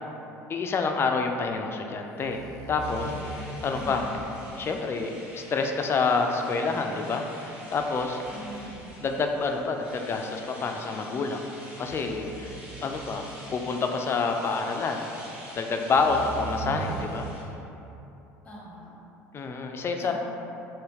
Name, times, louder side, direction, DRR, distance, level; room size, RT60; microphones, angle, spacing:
voice 1, 0.5-2.4 2.7-4.2 4.6-8.2 9.0-11.4 11.8-13.2 13.5-15.1 15.6-17.3 19.3-20.1, left 4 dB, 35° left, 4 dB, 0.3 m, -28 dB
sound 1, 2.2-4.2 7.6-9.2 9.9-10.0 11.8-13.4 15.1-15.2 15.9-17.2, right 4 dB, 65° right, 0.6 m, -39 dB
sound 2, 2.8-17.4, equal, 15° right, 1.2 m, -47 dB
voice 2, 3.7-4.2 8.3-8.8 16.0-16.3 18.4-19.0 20.0-20.1, equal, 15° left, -6 dB, 1.1 m, -43 dB
3.4 x 3.0 x 2.9 m, 2.9 s
supercardioid pair, 80°, 7 cm